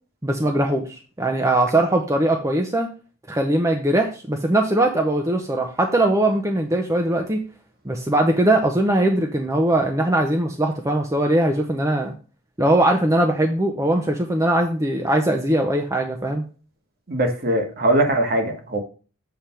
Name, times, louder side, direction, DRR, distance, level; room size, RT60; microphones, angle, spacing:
voice 1, 0.2-0.9 1.2-2.9 3.3-7.4 7.9-12.1 12.6-16.4, right 1 dB, 15° right, 0.6 m, -20 dB
voice 2, 17.1-18.8, right 1 dB, 45° right, 1.3 m, -21 dB
7.5 x 3.4 x 5.6 m
head